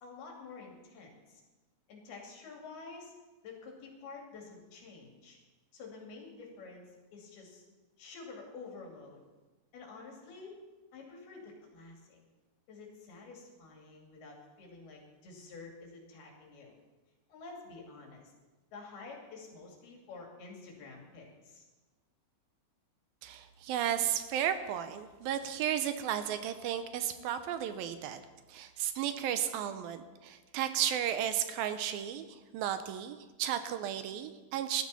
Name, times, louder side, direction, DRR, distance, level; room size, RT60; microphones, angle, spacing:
voice 1, 0.0-1.4 1.9-3.1 3.4-5.4 5.7-7.6 8.0-9.2 9.7-10.6 10.9-12.2 12.7-16.8 17.3-18.3 18.7-21.7, left 4 dB, 85° left, 0 dB, 4.5 m, -49 dB
voice 2, 23.2-28.2 28.5-34.8, right 10 dB, 80° right, 10 dB, 2.5 m, -34 dB
18.0 x 12.5 x 4.2 m, 1.2 s
omnidirectional pair, 4.4 m